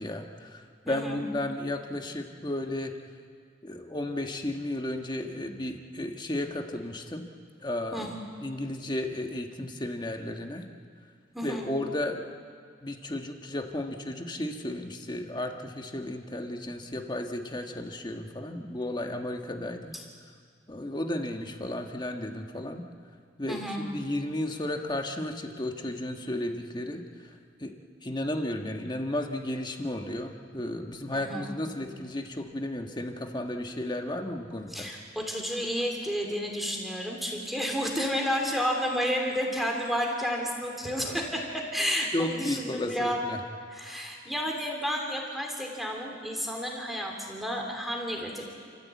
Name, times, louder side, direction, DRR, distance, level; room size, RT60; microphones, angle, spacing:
voice 1, 0.0-2.9 3.6-7.3 7.6-8.1 8.4-10.7 11.4-12.2 12.8-19.9 20.7-22.9 23.4-27.3 27.6-34.9 42.1-43.4, left 1 dB, 25° left, 4 dB, 1.4 m, -33 dB
voice 2, 0.8-1.2 7.9-8.1 11.3-11.7 19.9-20.0 23.5-23.9 31.1-31.6 34.7-43.2 43.7-48.5, equal, ahead, 0 dB, 3.1 m, -31 dB
29.5 x 14.5 x 8.3 m, 2.1 s
head